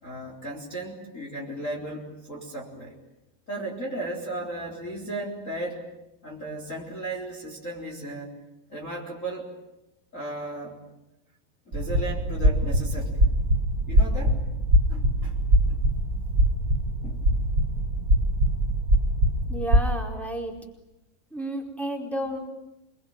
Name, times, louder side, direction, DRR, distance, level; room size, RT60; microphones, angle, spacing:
voice 1, 0.0-2.9 3.5-5.9 6.2-8.4 8.7-9.5 10.1-10.8 11.7-13.2 13.9-14.4 14.9-15.4 15.7-15.8 17.0-17.2, right 1 dB, 20° left, 0 dB, 4.0 m, -35 dB
sound 1, 11.7-19.9, right 1 dB, 60° right, 0.9 m, -23 dB
voice 2, 19.5-20.6 21.3-22.4, right 1 dB, ahead, 1 dB, 4.2 m, -31 dB
27.0 x 23.0 x 9.1 m, 0.92 s
omnidirectional pair, 4.6 m